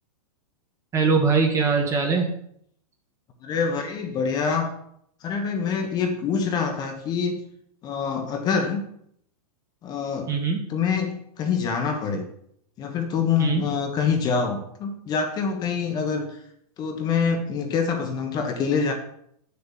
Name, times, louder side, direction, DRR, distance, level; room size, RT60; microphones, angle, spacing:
voice 1, 0.9-2.4 10.3-10.6 13.4-13.7, right 4 dB, 15° right, 3 dB, 1.3 m, -22 dB
voice 2, 3.4-4.7 5.2-7.4 7.8-8.8 9.8-10.3 10.7-12.2 12.8-16.4 16.8-18.9, left 6 dB, 20° left, 4 dB, 1.2 m, -25 dB
7.9 x 7.0 x 8.4 m, 0.70 s
hypercardioid pair, 160°, 20 cm